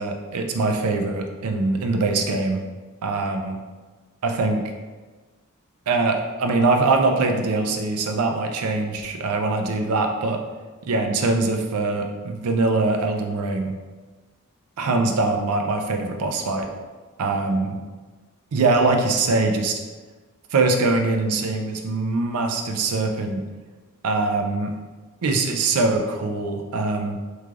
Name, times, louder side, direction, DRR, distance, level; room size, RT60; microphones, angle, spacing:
voice 1, 0.0-2.6 3.0-3.6 4.2-4.6 5.9-10.4 10.8-13.8 14.8-16.7 17.2-17.8 18.5-19.8 20.5-23.4 24.0-24.7 25.2-27.2, right 3 dB, 85° right, 4 dB, 0.4 m, -23 dB
3.5 x 3.2 x 2.4 m, 1.3 s
head